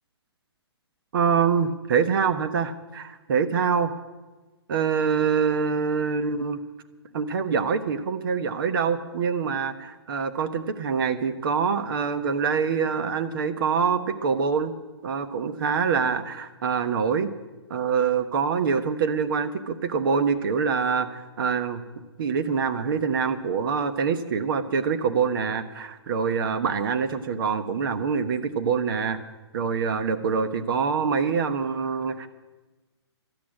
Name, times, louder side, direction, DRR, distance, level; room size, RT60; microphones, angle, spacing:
voice 1, 1.1-3.9 4.7-6.6 7.1-14.7 15.0-17.3 17.7-21.8 22.2-29.2 29.5-32.3, right 6 dB, 55° right, 9 dB, 1.2 m, -25 dB
12.5 x 8.6 x 9.7 m, 1.2 s
hypercardioid pair, 140°, 14 cm